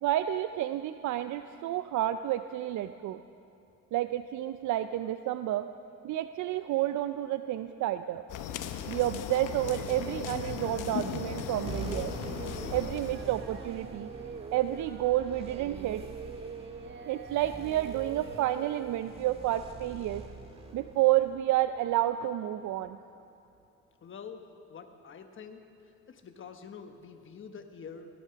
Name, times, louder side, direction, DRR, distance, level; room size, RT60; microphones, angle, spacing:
voice 1, 0.0-3.2 3.9-5.7 6.0-8.2 8.9-12.1 12.7-14.1 14.5-16.0 17.0-20.2 20.7-23.0, right 13 dB, 75° right, 11 dB, 0.5 m, -30 dB
sound 1, 8.3-13.4, left 9 dB, 85° left, 0.9 m, -37 dB
Singing, 9.7-19.1, right 5 dB, 40° right, 0.7 m, -45 dB
sound 2, 11.6-22.5, right 2 dB, 20° right, 1.7 m, -45 dB
voice 2, 24.0-24.4 24.7-25.6 26.1-28.1, left 6 dB, 40° left, 6 dB, 1.1 m, -46 dB
17.0 x 12.0 x 5.7 m, 2.6 s
cardioid pair, 90°, 30 cm